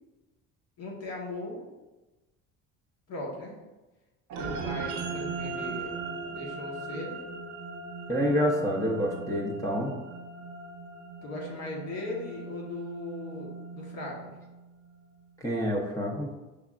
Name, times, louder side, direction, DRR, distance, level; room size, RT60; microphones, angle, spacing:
voice 1, 0.8-1.6 3.1-3.5 4.4-5.9 6.3-7.2 11.2-14.3, left 2 dB, 55° left, -2 dB, 1.2 m, -38 dB
sound 1, 4.3-14.9, right 4 dB, 70° right, 0.7 m, -39 dB
voice 2, 8.1-9.9 15.4-16.3, equal, 10° left, -2 dB, 0.6 m, -27 dB
5.8 x 3.4 x 2.4 m, 1.1 s
cardioid pair, 125°, 31 cm